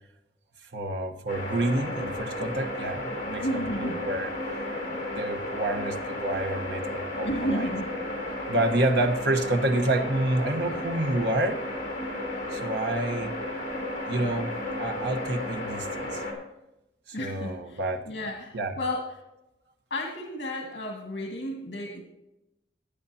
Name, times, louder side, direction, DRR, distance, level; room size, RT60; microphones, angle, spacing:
voice 1, 0.7-4.3 4.8-7.7 8.5-11.6 12.5-13.3 14.1-16.2 17.1-18.0 18.5-18.8, right 1 dB, 75° right, 5 dB, 1.1 m, -28 dB
sound 1, 1.3-16.3, left 1 dB, 45° left, 3.2 m, -33 dB
voice 2, 3.4-4.0 7.1-7.9 17.1-17.8 18.1-19.1 19.9-22.0, left 1 dB, 75° left, 0 dB, 1.9 m, -32 dB
18.5 x 8.6 x 2.8 m, 0.91 s
head